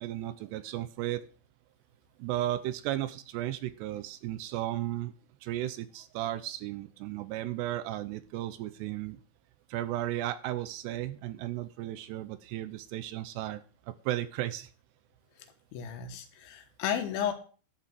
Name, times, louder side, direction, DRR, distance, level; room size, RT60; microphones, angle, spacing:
voice 1, 0.0-1.3 2.2-5.1 5.4-9.2 9.7-14.7, right 14 dB, 80° right, 12 dB, 2.5 m, -35 dB
voice 2, 15.7-17.3, left 9 dB, 75° left, 6 dB, 3.5 m, -33 dB
12.0 x 5.7 x 7.5 m, 0.39 s
omnidirectional pair, 5.5 m